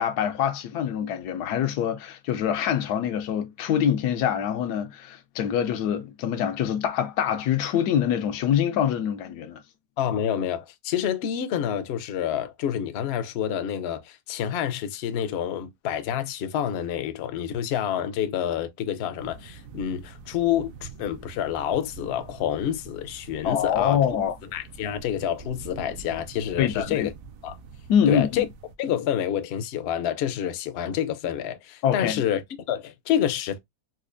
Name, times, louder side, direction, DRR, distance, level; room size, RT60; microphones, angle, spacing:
voice 1, 0.0-9.6 23.4-24.3 26.6-27.1 27.9-28.4 31.8-32.1, left 9 dB, 90° left, 1.1 m, -25 dB
voice 2, 10.0-24.0 24.5-27.1 27.4-27.5 28.1-28.5 28.8-33.6, left 10 dB, 70° left, 0.6 m, -28 dB
sound 1, 19.2-28.8, right 4 dB, 65° right, 0.9 m, -45 dB
4.1 x 2.4 x 2.5 m
omnidirectional pair, 1.7 m